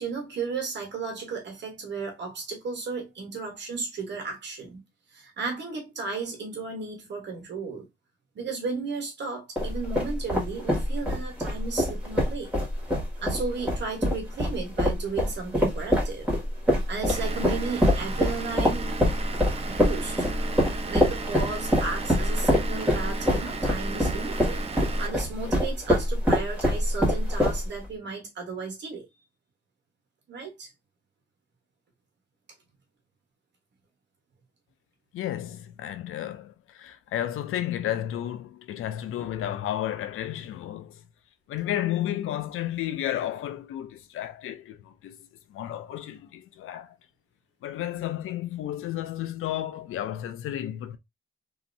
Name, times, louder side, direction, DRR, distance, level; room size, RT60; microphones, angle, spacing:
voice 1, 0.0-4.8 5.1-7.9 8.3-12.5 13.2-16.3 16.7-18.9 19.7-20.2 20.9-29.1 30.3-30.7, right 4 dB, 55° right, 1.1 m, -34 dB
sound 1, 9.6-27.9, left 1 dB, 5° right, 1.8 m, -25 dB
Vehicle / Engine, 17.1-25.1, right 4 dB, 30° right, 0.4 m, -36 dB
voice 2, 35.1-41.0 41.5-45.2 45.5-47.0 47.6-51.0, left 12 dB, 80° left, 0.4 m, -32 dB
3.0 x 2.7 x 2.6 m
cardioid pair, 120°, 21 cm